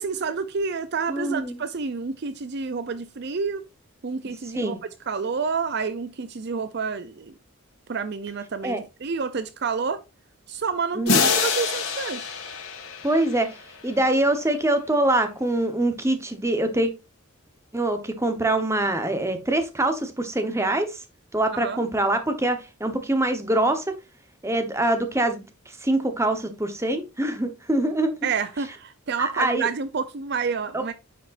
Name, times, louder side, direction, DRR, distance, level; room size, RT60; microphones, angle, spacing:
voice 1, 0.0-3.6 4.0-4.8 5.1-7.3 7.9-10.0 10.5-12.3 21.5-21.8 28.2-30.9, right 5 dB, 50° right, 0.5 m, -29 dB
voice 2, 1.1-1.6 4.5-4.8 8.6-8.8 11.0-11.3 13.0-13.5 13.8-16.9 17.7-21.0 21.3-23.9 24.4-25.5 25.8-28.1 29.2-29.7 30.7-30.8, right 1 dB, 15° right, 1.0 m, -24 dB
sound 1, 11.1-13.9, left 5 dB, 80° left, 2.3 m, -26 dB
9.7 x 5.1 x 2.5 m
head